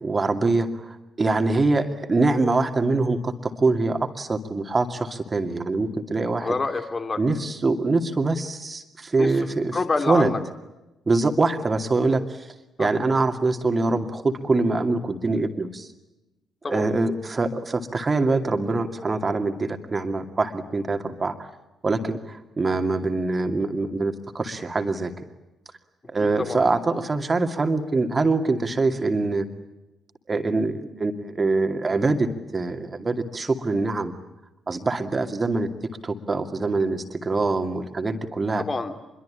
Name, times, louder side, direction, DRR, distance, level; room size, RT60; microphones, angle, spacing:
voice 1, 0.0-6.5 7.2-9.7 10.1-10.3 11.1-12.5 12.8-15.9 16.7-21.3 21.8-25.1 26.1-29.5 30.3-32.3 32.5-34.1 34.7-35.7 36.0-38.6, right 3 dB, 30° right, 7 dB, 2.5 m, -24 dB
voice 2, 6.4-7.2 9.2-9.5 9.7-10.4 12.8-12.9 16.6-16.9 26.2-26.6 38.6-39.0, left 3 dB, 30° left, 7 dB, 3.0 m, -27 dB
26.0 x 22.5 x 8.7 m, 0.99 s
figure-of-eight pair, 40°, 0 cm